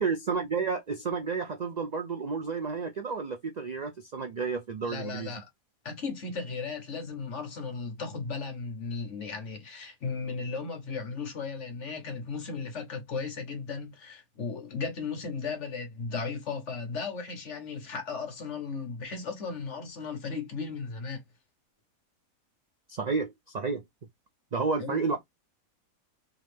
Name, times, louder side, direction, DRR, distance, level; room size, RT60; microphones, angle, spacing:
voice 1, 0.0-5.3 22.9-23.8 24.5-25.2, right 5 dB, 70° right, 0.4 m, -31 dB
voice 2, 4.8-5.5 5.8-21.2 24.8-25.0, left 4 dB, 55° left, 1.5 m, -36 dB
3.6 x 3.1 x 3.3 m
omnidirectional pair, 1.5 m